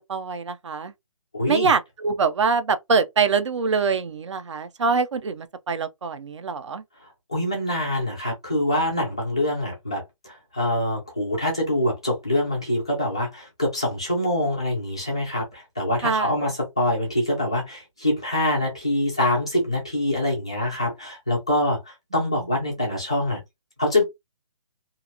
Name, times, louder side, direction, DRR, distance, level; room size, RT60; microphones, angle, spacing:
voice 1, 0.1-0.9 1.5-6.8 16.0-16.3, right 5 dB, 55° right, 0.5 m, -24 dB
voice 2, 1.3-1.7 7.3-23.4 23.8-24.0, left 1 dB, 10° left, 0.3 m, -25 dB
2.5 x 2.2 x 2.7 m
hypercardioid pair, 175°, 18 cm